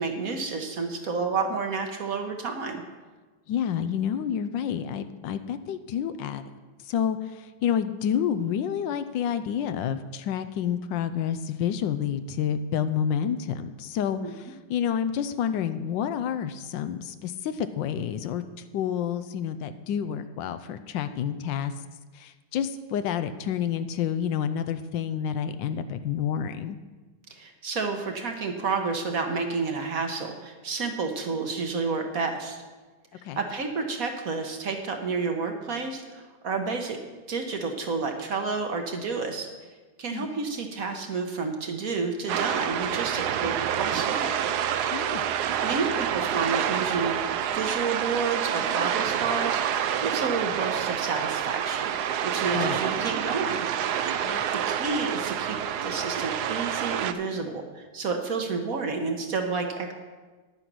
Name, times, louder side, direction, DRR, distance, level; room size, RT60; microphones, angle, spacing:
voice 1, 0.0-2.8 14.2-14.3 27.3-32.6 33.3-37.0 37.3-39.5 40.0-44.4 45.6-47.1 47.5-53.7 54.5-59.9, right 4 dB, 55° right, 4 dB, 1.4 m, -30 dB
voice 2, 3.5-6.4 6.8-18.4 18.7-21.7 22.1-26.8 33.2-33.4 40.1-40.3 44.9-45.2 52.5-52.8 54.2-54.4, left 8 dB, 80° left, 11 dB, 1.3 m, -29 dB
sound 1, 42.3-57.1, right 9 dB, 70° right, 1.0 m, -28 dB
10.0 x 9.1 x 6.1 m, 1.3 s
omnidirectional pair, 2.0 m